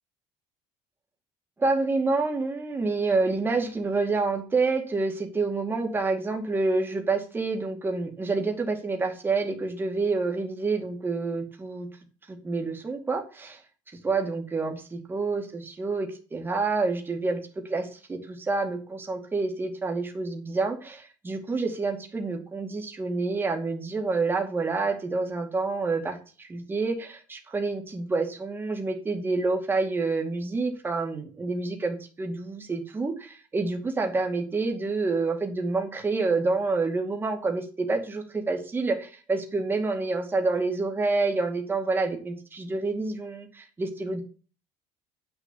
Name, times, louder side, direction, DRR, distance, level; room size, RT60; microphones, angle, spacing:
voice 1, 1.6-11.9 12.3-13.6 14.0-17.4 17.7-44.2, right 3 dB, 15° right, 3 dB, 2.3 m, -28 dB
10.0 x 6.8 x 7.3 m, 0.37 s
cardioid pair, 150°, 13 cm